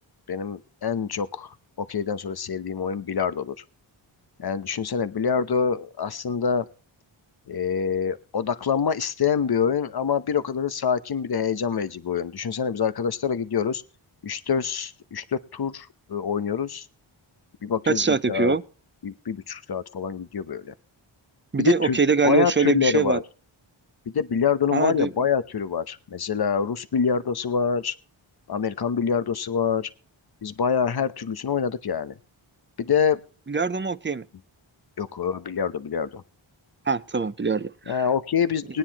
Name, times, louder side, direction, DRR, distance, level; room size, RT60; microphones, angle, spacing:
voice 1, 0.3-3.6 4.4-6.7 7.5-13.8 14.2-16.9 17.6-18.0 18.3-18.6 19.0-20.7 21.6-22.0 22.2-23.2 24.1-27.9 28.5-29.9 30.4-32.1 32.8-33.2 35.0-36.2 37.9-38.8, left 6 dB, 50° left, 0.9 m, -26 dB
voice 2, 17.9-18.6 21.5-23.2 24.7-25.1 33.5-34.2 36.9-38.1, right 5 dB, 25° right, 0.6 m, -23 dB
20.5 x 9.6 x 2.9 m
wide cardioid pair, 80°, 49 cm